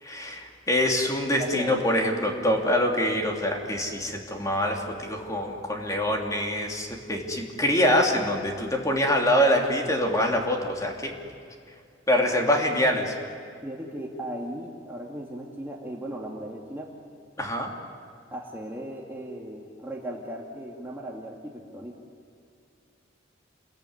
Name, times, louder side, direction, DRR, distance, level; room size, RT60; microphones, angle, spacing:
voice 1, 0.0-11.1 12.1-13.1 17.4-17.7, left 1 dB, 15° left, 2 dB, 3.1 m, -25 dB
voice 2, 1.4-2.4 13.6-16.9 18.3-22.0, right 1 dB, 10° right, -1 dB, 2.0 m, -37 dB
28.0 x 22.0 x 9.7 m, 2.3 s
head